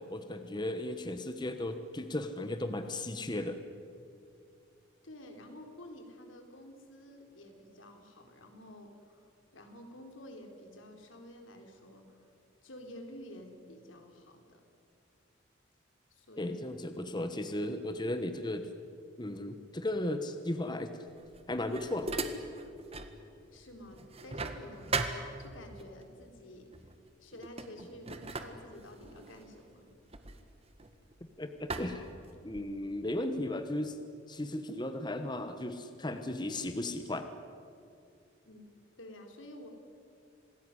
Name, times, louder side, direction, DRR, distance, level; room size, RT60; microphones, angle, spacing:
voice 1, 0.0-3.6 16.4-18.7 19.2-20.9 21.5-22.1 31.4-32.1 32.4-34.0 34.3-37.3, left 1 dB, 20° left, 8 dB, 1.2 m, -35 dB
voice 2, 5.0-9.2 9.5-12.3 12.6-14.6 16.1-16.6 23.5-26.7 27.2-29.9 38.4-38.7 39.0-39.7, left 1 dB, 85° left, 4 dB, 4.1 m, -50 dB
sound 1, 21.2-23.2 23.5-25.9 26.7-27.0 27.3-31.2 31.7-32.8, right 3 dB, 30° right, 1.7 m, -39 dB
27.0 x 19.0 x 9.8 m, 2.5 s
head